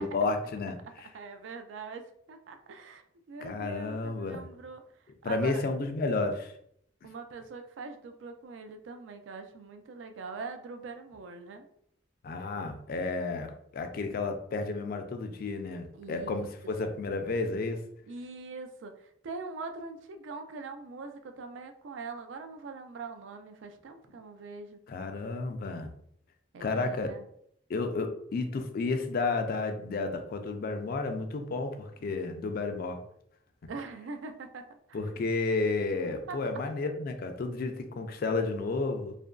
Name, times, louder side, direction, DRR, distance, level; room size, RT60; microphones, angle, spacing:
voice 1, 0.0-1.1 3.4-4.4 5.2-6.5 12.2-17.8 24.9-25.9 26.6-27.1 27.7-33.0 34.9-39.1, left 3 dB, 50° left, 7 dB, 0.3 m, -32 dB
voice 2, 1.1-3.0 3.3-4.8 5.2-5.6 7.0-11.7 15.9-16.9 18.1-24.8 26.5-27.3 33.7-35.0 36.3-36.4, right 4 dB, 80° right, 7 dB, 0.4 m, -42 dB
2.8 x 2.5 x 2.2 m, 0.69 s
head